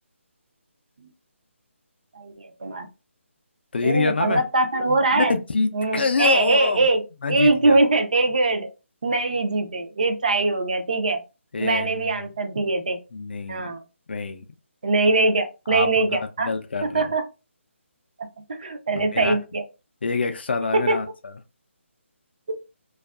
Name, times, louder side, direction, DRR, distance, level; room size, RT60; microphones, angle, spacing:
voice 1, 2.2-2.9 3.8-5.4 5.7-7.0 7.3-8.7 9.0-11.2 11.6-13.0 13.5-13.8 14.8-16.5 16.8-17.2 18.5-19.6 20.7-21.0 22.5-22.6, right 3 dB, 35° right, 0.4 m, -22 dB
voice 2, 3.7-4.4 5.1-6.8 7.2-7.8 11.5-12.3 13.1-13.8 14.1-14.4 15.7-17.1 18.9-19.4 20.0-21.3, left 4 dB, 50° left, 0.3 m, -26 dB
2.5 x 2.3 x 2.3 m
hypercardioid pair, 175°, 7 cm